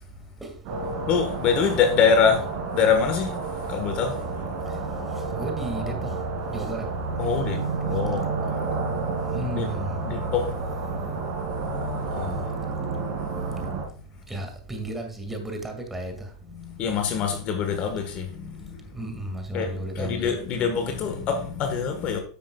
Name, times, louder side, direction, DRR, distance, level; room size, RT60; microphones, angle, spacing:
sound 1, 0.6-13.9, right 4 dB, 50° right, 2.4 m, -30 dB
voice 1, 1.1-2.4 2.7-3.4 3.7-4.2 7.2-8.3 9.5-9.7 10.0-10.5 11.6-12.4 16.6-18.8 19.5-22.2, left 6 dB, 40° left, 1.5 m, -25 dB
voice 2, 5.3-6.1 6.5-6.9 9.3-9.9 14.3-16.1 18.9-20.3, right 1 dB, 10° right, 2.2 m, -33 dB
10.0 x 7.5 x 2.4 m
hypercardioid pair, 115°, 3 cm